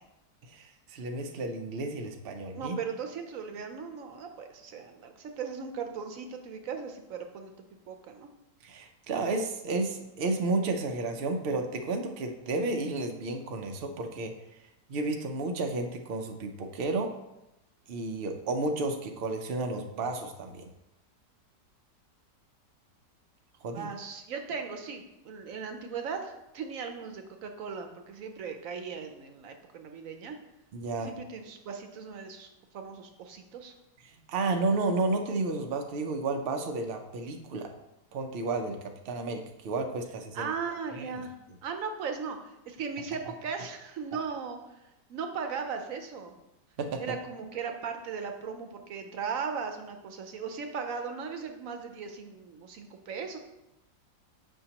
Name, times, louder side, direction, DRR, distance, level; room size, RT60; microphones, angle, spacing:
voice 1, 0.5-2.8 8.6-14.3 14.9-17.1 17.9-20.7 23.6-23.9 30.7-31.1 34.3-37.7 38.1-38.8 39.0-40.5 40.9-41.1 46.8-47.0, right 3 dB, 80° right, 4 dB, 0.5 m, -32 dB
voice 2, 2.5-8.3 23.7-30.4 31.0-32.5 32.7-33.7 40.3-41.3 41.6-44.8 45.1-46.4 47.0-53.4, right 5 dB, 65° right, 5 dB, 0.9 m, -38 dB
7.7 x 5.5 x 2.9 m, 0.90 s
omnidirectional pair, 1.9 m